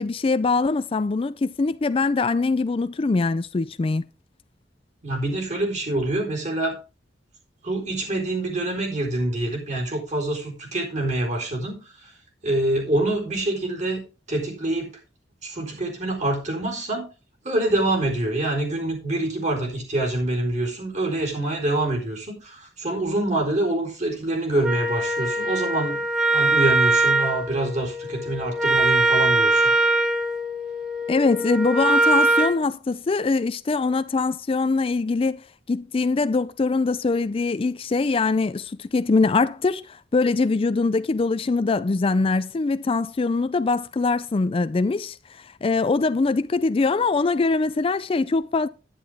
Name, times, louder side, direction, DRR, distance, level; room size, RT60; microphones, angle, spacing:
voice 1, 0.0-4.0 31.1-48.7, left 3 dB, 30° left, 0.4 m, -23 dB
voice 2, 5.0-6.8 7.6-12.1 12.4-14.9 15.4-17.1 17.4-26.0 26.3-29.7, right 1 dB, 40° right, 4.0 m, -26 dB
Wind instrument woodwind instrument, 24.6-32.6, right 2 dB, 5° right, 1.3 m, -22 dB
10.5 x 10.0 x 3.5 m
head